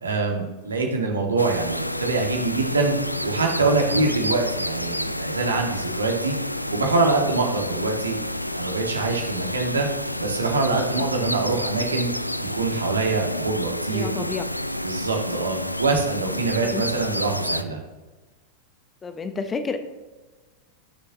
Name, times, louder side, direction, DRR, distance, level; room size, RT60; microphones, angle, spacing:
voice 1, 0.0-3.0 3.2-6.3 6.7-8.2 8.5-9.9 10.2-12.1 12.5-14.3 14.8-17.8, right 3 dB, 75° right, 2 dB, 1.8 m, -24 dB
sound 1, 1.4-17.6, left 1 dB, 85° left, 0.4 m, -29 dB
voice 2, 13.9-14.4 15.3-15.5 16.7-16.8 19.0-19.8, left 5 dB, 20° left, 9 dB, 0.9 m, -30 dB
17.5 x 6.8 x 2.9 m, 1.2 s
figure-of-eight pair, 90°, 0 cm